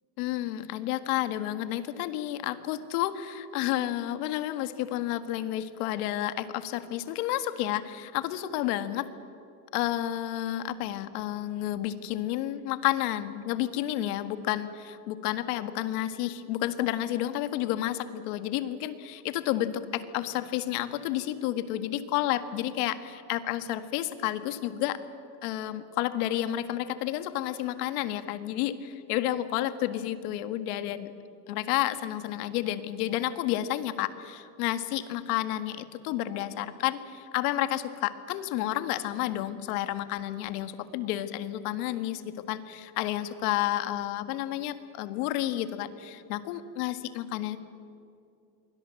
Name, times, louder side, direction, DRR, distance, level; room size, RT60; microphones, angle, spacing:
voice 1, 0.2-9.1 9.7-25.0 25.4-31.1 31.5-47.6, left 13 dB, 75° left, 10 dB, 1.8 m, -31 dB
28.5 x 23.5 x 7.8 m, 2.5 s
cardioid pair, 155°, 45 cm